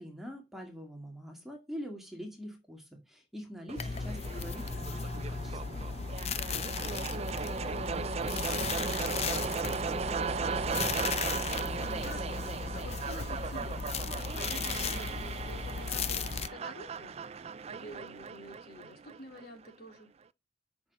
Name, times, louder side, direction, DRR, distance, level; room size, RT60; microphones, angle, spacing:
voice 1, 0.0-5.8, equal, ahead, 2 dB, 2.0 m, -44 dB
sound 1, 3.7-19.7, right 5 dB, 35° right, 0.4 m, -37 dB
sound 2, 3.8-16.5, left 5 dB, 35° left, 0.6 m, -36 dB
voice 2, 6.3-12.4 12.7-13.8 14.3-17.2 17.6-20.1, equal, 60° left, 3 dB, 3.0 m, -50 dB
6.5 x 6.1 x 7.0 m, 0.25 s
head